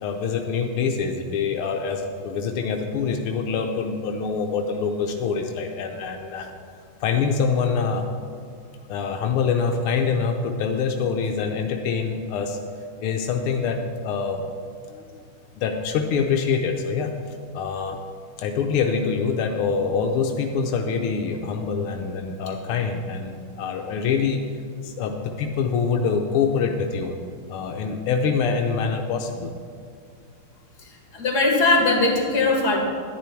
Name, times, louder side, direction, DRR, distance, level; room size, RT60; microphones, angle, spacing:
voice 1, 0.0-6.5 7.0-8.1 8.9-12.6 13.0-14.4 14.9-15.2 15.6-17.1 17.5-18.0 18.4-24.4 24.8-27.2 27.5-29.5, left 5 dB, 90° left, 3 dB, 1.7 m, -25 dB
voice 2, 30.8-32.8, left 2 dB, 50° left, 0 dB, 2.5 m, -20 dB
11.0 x 10.5 x 4.5 m, 2.3 s
omnidirectional pair, 2.4 m